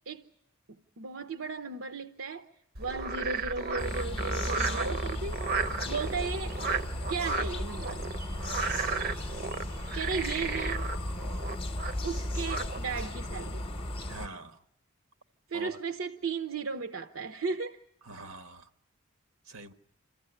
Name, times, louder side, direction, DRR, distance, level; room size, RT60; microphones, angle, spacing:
voice 1, 1.0-2.5 2.8-6.6 7.1-8.0 9.9-10.9 12.0-13.7 15.5-17.8, right 4 dB, 75° right, 0.9 m, -35 dB
Frog, 2.7-13.0, right 4 dB, 45° right, 0.8 m, -34 dB
sound 1, 3.8-14.3, left 1 dB, 25° left, 0.8 m, -36 dB
voice 2, 14.1-14.6 15.5-15.8 18.0-18.7 19.5-19.7, right 3 dB, 90° right, 1.4 m, -44 dB
27.5 x 14.5 x 10.0 m
head